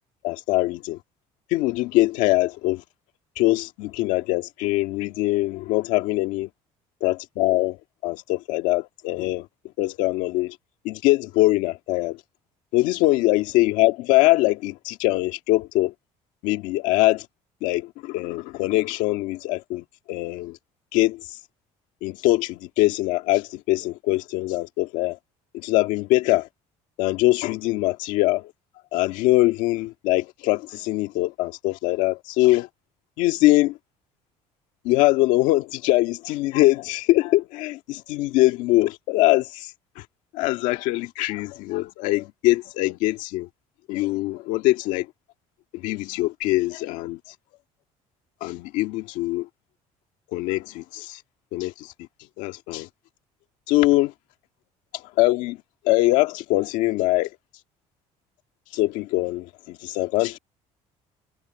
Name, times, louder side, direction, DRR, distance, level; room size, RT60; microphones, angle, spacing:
voice 1, 0.2-1.0 1.5-2.8 3.3-6.5 7.0-9.5 9.8-10.5 10.8-12.2 12.7-15.9 16.4-17.3 17.6-20.6 20.9-21.4 22.0-25.2 25.5-26.5 27.0-28.5 28.9-32.7 33.2-33.8 34.8-40.0 40.3-43.5 43.9-45.1 45.7-47.2 48.4-49.5 50.3-51.2 51.5-52.1 52.4-52.9 53.7-54.1 54.9-57.4 58.7-60.4, left 18 dB, 85° left, 1.8 m, -23 dB
cardioid pair, 115°, 13 cm